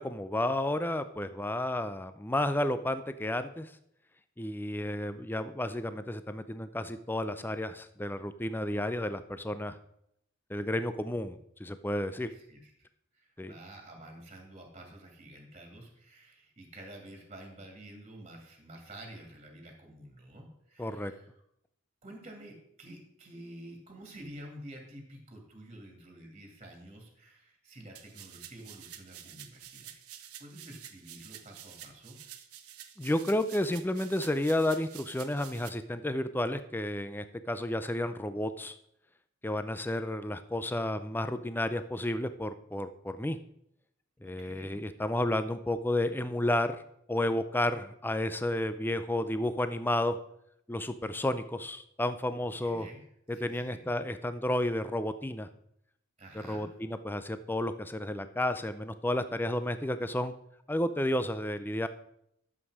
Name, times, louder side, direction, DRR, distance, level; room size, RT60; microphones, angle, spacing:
voice 1, 0.0-3.7 4.4-9.8 10.5-12.3 13.4-13.5 20.8-21.1 33.0-38.7 39.4-43.4 44.2-46.8 47.1-50.2 50.7-52.9 53.3-55.5 56.5-60.3 60.7-61.9, left 1 dB, 10° left, 11 dB, 0.4 m, -31 dB
voice 2, 12.2-12.9 13.1-21.3 22.0-32.2 44.2-44.8 52.6-53.0 53.3-53.8 56.2-56.8, right 1 dB, 30° right, 2 dB, 2.3 m, -50 dB
sound 1, 28.0-35.7, right 11 dB, 85° right, 1.0 m, -49 dB
11.5 x 7.4 x 4.8 m, 0.74 s
head